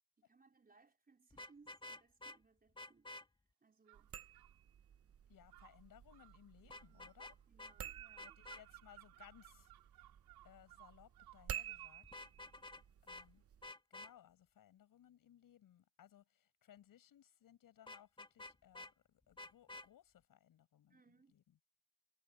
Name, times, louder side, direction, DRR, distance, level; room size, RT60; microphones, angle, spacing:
voice 1, 0.2-3.1 3.6-4.1 6.6-7.2 7.5-8.4 20.9-21.4, right 4 dB, 25° right, 4.3 m, -69 dB
Vehicle horn car horn honking, 1.3-2.4 2.8-3.2 6.7-7.3 7.6-7.7 8.2-8.6 12.0-12.8 13.1-13.3 13.6-14.1 17.9-18.9 19.4-19.9, left 2 dB, 15° left, 2.0 m, -51 dB
sound 1, 3.9-13.7, right 9 dB, 40° right, 0.9 m, -52 dB
sound 2, 3.9-4.6 5.5-12.0, right 17 dB, 70° right, 3.7 m, -62 dB
voice 2, 5.3-7.3 8.2-10.0 10.4-12.1 13.0-13.4 13.9-21.0 21.3-21.6, left 11 dB, 60° left, 7.9 m, -64 dB
cardioid pair, 90°, 37 cm